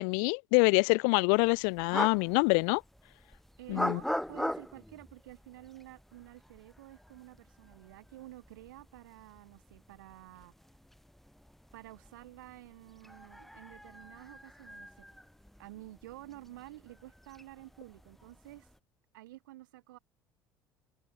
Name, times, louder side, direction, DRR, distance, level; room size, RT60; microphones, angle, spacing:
voice 1, 0.0-2.8 3.7-4.0, left 40 dB or more, 60° left, 0.5 m, -26 dB
sound 1, 1.3-18.8, equal, ahead, 5.0 m, -42 dB
voice 2, 3.6-10.5 11.7-15.1 15.6-18.7 19.1-20.0, right 17 dB, 70° right, 7.7 m, -50 dB
figure-of-eight pair, 60°, 11 cm